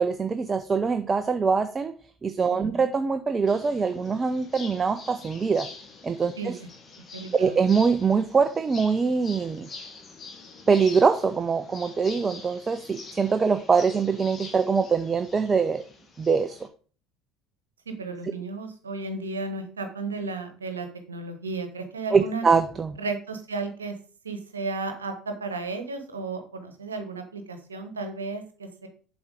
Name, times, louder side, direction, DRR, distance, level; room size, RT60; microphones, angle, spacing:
voice 1, 0.0-1.9 2.2-5.7 6.0-6.6 7.3-9.7 10.7-15.8 16.2-16.6 22.1-23.0, right 5 dB, 25° right, 10 dB, 0.5 m, -23 dB
sound 1, 3.5-16.7, left 4 dB, 30° left, 1.7 m, -45 dB
voice 2, 6.9-7.6 17.9-22.4 23.0-23.9 24.2-28.9, right 3 dB, 85° right, 7 dB, 1.1 m, -34 dB
7.2 x 4.4 x 4.9 m, 0.40 s
figure-of-eight pair, 65°, 0 cm